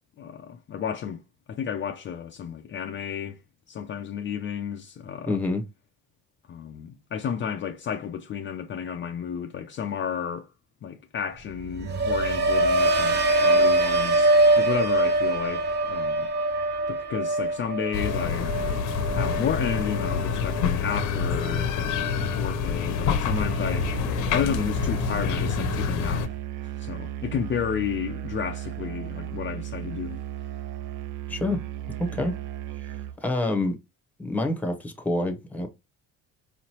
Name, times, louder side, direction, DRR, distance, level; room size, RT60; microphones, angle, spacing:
voice 1, 0.2-1.2 1.5-3.4 3.7-5.4 6.5-10.5 10.8-16.3 16.9-18.5 19.1-24.0 24.3-26.4 26.6-30.2, left 7 dB, 35° left, 0.5 m, -32 dB
voice 2, 5.3-5.6 31.3-31.6 32.0-32.4 33.2-33.8 34.2-35.7, left 2 dB, 5° left, 0.8 m, -27 dB
sound 1, 11.5-21.6 21.9-22.4, right 2 dB, 35° right, 0.6 m, -24 dB
sound 2, 17.9-26.3, left 6 dB, 65° left, 0.8 m, -27 dB
Musical instrument, 23.3-33.2, right 13 dB, 75° right, 0.5 m, -35 dB
4.9 x 3.1 x 2.9 m
cardioid pair, 135°, 32 cm